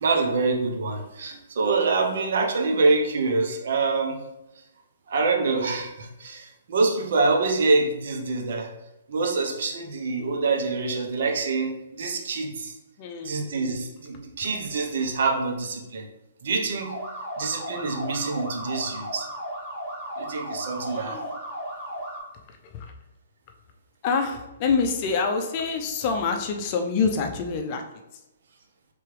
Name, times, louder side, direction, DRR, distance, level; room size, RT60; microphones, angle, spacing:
voice 1, 0.0-4.2 5.1-8.7 9.1-12.7 13.2-16.1 16.4-17.0 17.4-19.3 20.2-21.2, right 3 dB, 65° right, 2 dB, 0.9 m, -25 dB
voice 2, 13.0-13.3 20.8-21.4 22.5-22.9 24.0-27.8, left 5 dB, 35° left, 4 dB, 0.6 m, -26 dB
sound 1, 16.8-22.2, equal, 20° right, 1.7 m, -35 dB
4.5 x 3.4 x 3.3 m, 0.92 s
hypercardioid pair, 145°, 0 cm